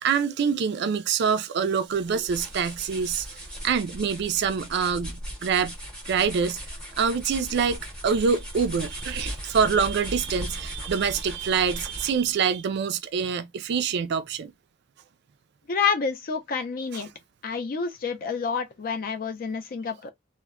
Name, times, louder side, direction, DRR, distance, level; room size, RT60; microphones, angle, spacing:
voice 1, 0.0-5.7 6.1-6.6 7.0-14.5 16.9-17.0, right 6 dB, 55° right, 0.3 m, -25 dB
sound 1, 1.9-12.3, equal, 5° left, 0.8 m, -38 dB
voice 2, 15.7-17.1 17.4-20.1, left 5 dB, 45° left, 0.4 m, -28 dB
2.1 x 2.1 x 3.4 m
head